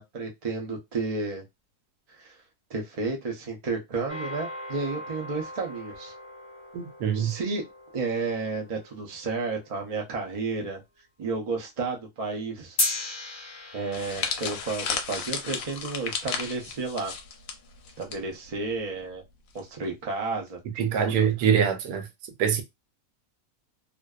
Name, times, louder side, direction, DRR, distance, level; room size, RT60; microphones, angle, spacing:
voice 1, 0.0-1.4 2.2-2.4 2.7-6.1 7.1-7.7 7.9-10.8 11.2-12.8 13.7-17.1 18.0-19.2 19.5-21.3, right 3 dB, 70° right, 0.3 m, -32 dB
sound 1, 4.1-10.6 12.8-17.2, left 2 dB, 40° left, 0.9 m, -37 dB
voice 2, 6.7-7.4 20.8-22.1 22.4-22.6, right 8 dB, 85° right, 1.1 m, -24 dB
sound 2, 13.9-18.2 18.4-18.7 19.6-19.8, left 6 dB, 70° left, 0.9 m, -33 dB
2.5 x 2.2 x 2.3 m
omnidirectional pair, 1.6 m